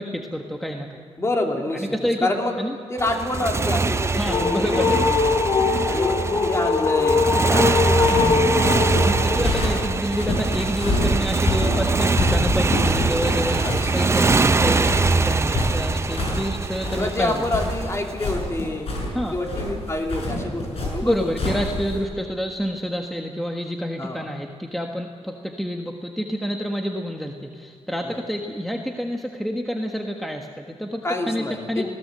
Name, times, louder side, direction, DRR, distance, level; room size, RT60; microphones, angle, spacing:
voice 1, 0.0-1.0 1.7-2.3 2.6-2.8 4.2-5.1 8.1-8.6 9.0-17.3 19.1-19.4 21.0-31.9, equal, ahead, 2 dB, 1.5 m, -28 dB
voice 2, 1.2-1.9 2.2-2.6 2.9-5.4 5.9-8.3 13.6-14.1 17.0-18.9 19.3-21.4 24.0-24.2 28.0-28.2 31.0-31.9, left 2 dB, 25° left, 2 dB, 3.2 m, -27 dB
Motorcycle, 3.0-18.1, right 3 dB, 25° right, 0.6 m, -23 dB
sound 1, 4.0-10.0, left 4 dB, 50° left, 3.0 m, -22 dB
sound 2, 7.9-22.0, left 1 dB, 70° left, 7.9 m, -27 dB
20.5 x 17.5 x 8.0 m, 2.3 s
wide cardioid pair, 105°, 10 cm